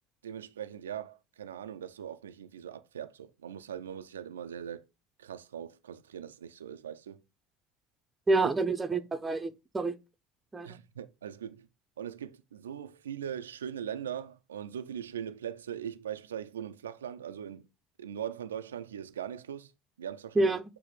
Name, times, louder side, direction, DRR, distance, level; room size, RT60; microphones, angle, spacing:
voice 1, 0.2-4.8 5.2-7.2 8.4-8.5 10.6-11.7 12.0-17.7 18.0-19.7 20.0-20.6, right 9 dB, 80° right, 0.6 m, -40 dB
voice 2, 8.3-9.9 10.5-10.7 20.4-20.6, right 2 dB, 20° right, 0.9 m, -27 dB
8.8 x 2.9 x 5.1 m
figure-of-eight pair, 65°, 0 cm